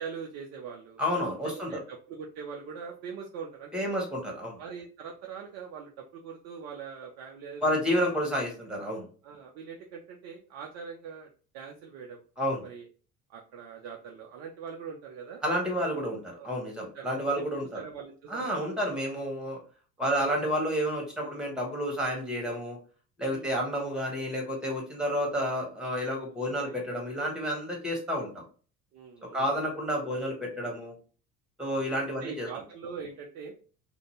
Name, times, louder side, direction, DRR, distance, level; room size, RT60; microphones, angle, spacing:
voice 1, 0.0-1.0 1.4-3.9 4.6-7.6 9.2-11.3 11.5-12.2 12.6-12.9 13.3-15.4 16.4-16.6 16.9-17.2 17.7-18.5 20.2-20.3 23.3-23.6 26.3-26.8 28.9-29.5 30.1-30.2 31.7-31.9 32.2-33.5, right 6 dB, 35° right, 1 dB, 0.5 m, -42 dB
voice 2, 1.0-1.7 3.7-4.6 7.6-9.1 12.4-12.6 15.4-17.8 18.3-19.6 20.0-22.8 23.2-28.4 29.3-30.9 31.6-32.5, equal, ahead, 0 dB, 1.2 m, -30 dB
2.6 x 2.2 x 3.1 m, 0.39 s
figure-of-eight pair, 65°, 46 cm